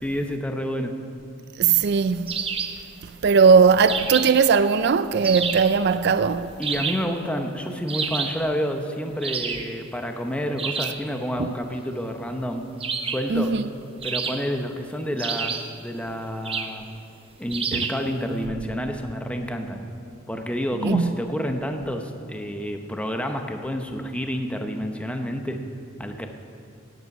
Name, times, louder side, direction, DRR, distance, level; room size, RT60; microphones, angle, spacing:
voice 1, 0.0-0.9 6.6-12.7 13.0-13.5 14.0-16.9 17.4-19.8 20.3-25.6 26.0-26.3, equal, 5° left, 0.8 m, -29 dB
voice 2, 1.6-2.4 3.2-6.5 11.4-11.5 13.3-13.6 17.7-17.9 20.8-21.1, right 5 dB, 55° right, 0.4 m, -19 dB
sound 1, 2.3-2.8 3.9-4.5 5.2-5.8 6.6-7.1 7.9-8.4 9.2-9.7 10.6-11.0 12.8-13.3 14.0-14.7 15.2-15.8 16.4-16.8 17.5-18.1, right 5 dB, 30° right, 0.8 m, -29 dB
16.5 x 9.6 x 6.0 m
head